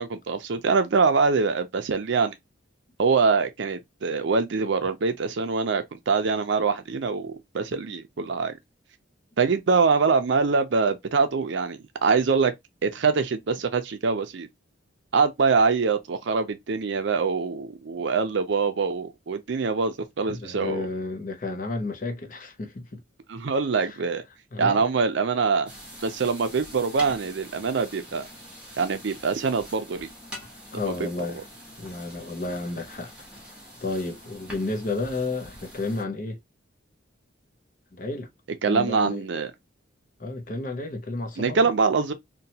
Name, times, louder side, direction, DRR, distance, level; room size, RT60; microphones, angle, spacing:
voice 1, 0.0-2.3 3.0-8.5 9.4-12.5 12.8-14.5 15.1-20.8 23.3-24.2 24.6-25.7 26.0-28.3 28.8-30.1 31.0-31.1 38.6-39.5 41.4-42.1, right 4 dB, 65° right, 0.5 m, -24 dB
voice 2, 20.3-23.0 23.8-24.0 24.5-24.8 30.7-31.5 31.8-33.1 33.8-36.4 37.9-38.3 38.6-39.2 40.2-41.6, left 3 dB, 40° left, 0.6 m, -31 dB
sound 1, 25.7-36.0, equal, 5° right, 0.9 m, -44 dB
2.9 x 2.2 x 2.7 m
head